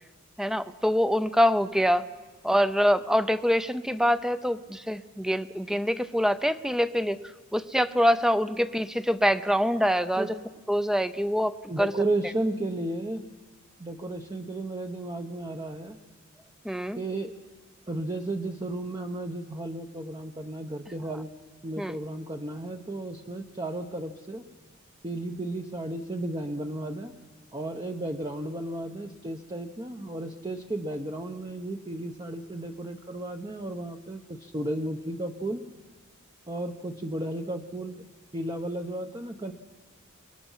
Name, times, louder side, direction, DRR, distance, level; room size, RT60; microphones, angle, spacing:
voice 1, 0.4-2.1 2.4-7.2 7.5-10.4 10.7-11.9 16.6-17.0 21.8-22.0, equal, ahead, 12 dB, 0.6 m, -25 dB
voice 2, 11.7-13.3 13.8-16.0 17.0-17.3 17.9-21.3 21.6-24.4 25.0-27.1 27.5-35.6 36.5-38.0 38.3-39.5, right 1 dB, 20° right, 5 dB, 0.9 m, -33 dB
30.0 x 21.0 x 5.7 m, 1.3 s
head